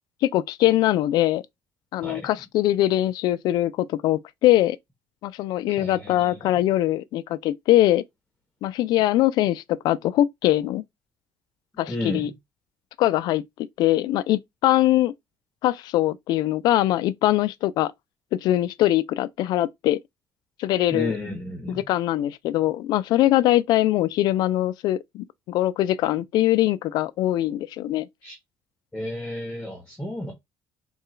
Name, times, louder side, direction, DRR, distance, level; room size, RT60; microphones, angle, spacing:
voice 1, 0.2-1.4 1.9-4.8 5.2-8.0 8.6-10.8 11.8-12.3 13.0-13.4 13.8-15.1 15.6-17.9 18.3-20.0 20.6-21.2 21.7-28.1, left 14 dB, 65° left, 0.3 m, -22 dB
voice 2, 5.7-6.5 11.9-12.3 20.9-21.8 28.2-28.4 28.9-30.3, left 1 dB, 10° left, 0.9 m, -32 dB
3.7 x 2.3 x 4.3 m
cardioid pair, 165°, 8 cm